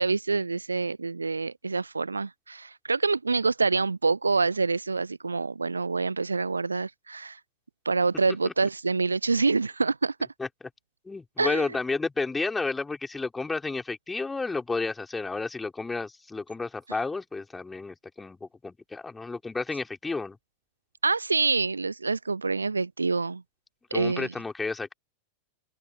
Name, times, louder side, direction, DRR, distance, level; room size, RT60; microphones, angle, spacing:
voice 1, 0.0-7.4 7.9-10.1 11.4-11.7 21.0-23.4 23.9-24.3, right 4 dB, 80° right, 0.6 m, -26 dB
voice 2, 11.1-20.4 23.9-24.9, left 3 dB, 10° left, 3.7 m, -31 dB
figure-of-eight pair, 90°, 0 cm